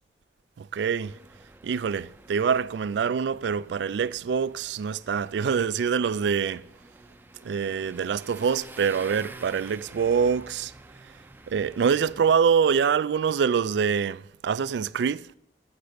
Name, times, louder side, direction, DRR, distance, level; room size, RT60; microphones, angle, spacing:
voice 1, 0.6-1.2 1.6-6.7 7.4-10.7 11.5-15.3, right 6 dB, 70° right, 0.3 m, -25 dB
sound 1, 1.0-12.4, right 2 dB, 10° right, 0.5 m, -49 dB
8.0 x 6.6 x 7.5 m
head